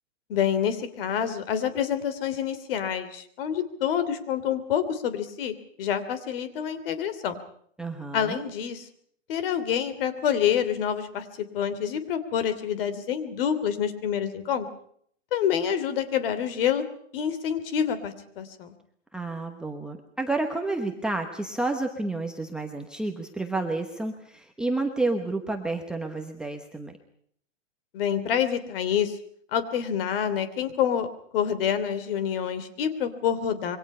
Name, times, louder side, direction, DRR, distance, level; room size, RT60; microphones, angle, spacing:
voice 1, 0.3-7.4 8.1-8.8 9.3-14.7 15.3-16.8 17.1-18.7 27.9-29.2 29.5-31.1 31.3-33.8, left 8 dB, 45° left, 11 dB, 3.0 m, -27 dB
voice 2, 7.8-8.4 19.1-27.0, right 2 dB, ahead, 2 dB, 1.0 m, -30 dB
27.0 x 23.5 x 5.6 m, 0.65 s
hypercardioid pair, 165°, 38 cm